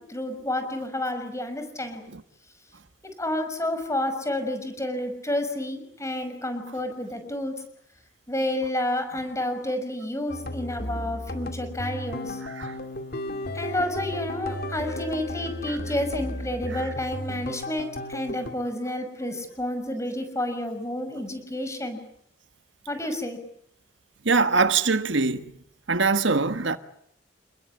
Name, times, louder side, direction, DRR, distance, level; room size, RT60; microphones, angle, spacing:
voice 1, 0.0-2.0 3.2-7.6 8.3-12.4 13.5-22.0 22.9-23.4, left 1 dB, 15° left, 6.2 m, -30 dB
sound 1, 10.3-18.5, left 1 dB, 50° left, 2.5 m, -34 dB
voice 2, 12.4-12.8 15.7-15.8 16.7-16.8 24.2-25.5 25.9-26.8, right 4 dB, 70° right, 1.5 m, -23 dB
29.5 x 21.0 x 8.6 m
head